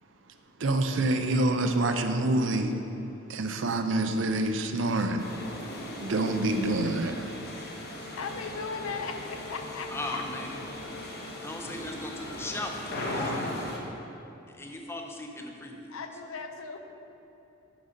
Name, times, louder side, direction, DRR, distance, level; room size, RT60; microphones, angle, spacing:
voice 1, 0.6-2.7 3.3-5.3 6.0-7.3, right 2 dB, 60° right, 6 dB, 0.5 m, -26 dB
sound 1, 5.2-13.8, left 1 dB, 50° left, 0.9 m, -38 dB
voice 2, 8.2-10.2 15.9-16.9, left 5 dB, 80° left, 6 dB, 0.6 m, -37 dB
voice 3, 9.9-10.6 11.4-13.7 14.5-16.0, left 1 dB, 10° left, 2 dB, 0.5 m, -38 dB
6.5 x 5.9 x 5.1 m, 3.0 s
head